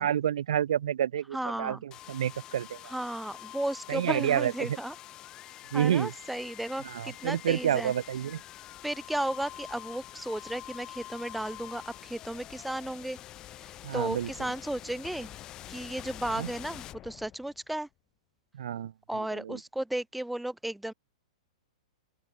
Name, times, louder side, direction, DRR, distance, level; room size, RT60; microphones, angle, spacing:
voice 1, 0.0-2.9 3.9-4.8 5.7-6.1 6.8-8.4 13.8-14.3 16.4-16.5 18.5-19.6, right 10 dB, 60° right, 0.9 m, -29 dB
voice 2, 1.3-1.8 2.9-4.9 5.7-7.9 8.8-13.2 13.6-15.4 15.7-17.9 19.1-20.9, right 1 dB, ahead, 0.6 m, -34 dB
sound 1, 1.9-17.7, left 13 dB, 15° left, 1.7 m, -46 dB
open air
hypercardioid pair, 180°, 4 cm